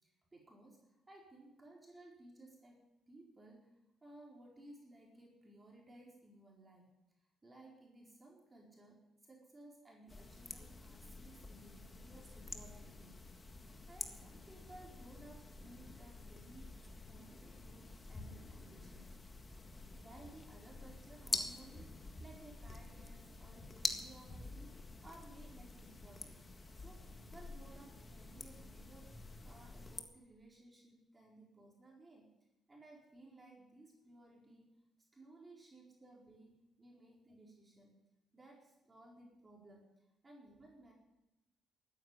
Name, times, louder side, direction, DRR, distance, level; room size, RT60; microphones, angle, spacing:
voice 1, 0.0-6.9 7.4-13.2 13.9-19.1 19.9-26.4 26.7-29.2 29.4-32.3 32.7-34.7 35.1-38.0 38.3-40.9, right 2 dB, 25° right, -2 dB, 4.5 m, -59 dB
sound 1, 10.1-30.0, left 3 dB, 25° left, 1.7 m, -47 dB
13.5 x 9.7 x 9.9 m, 0.94 s
cardioid pair, 90°, 0 cm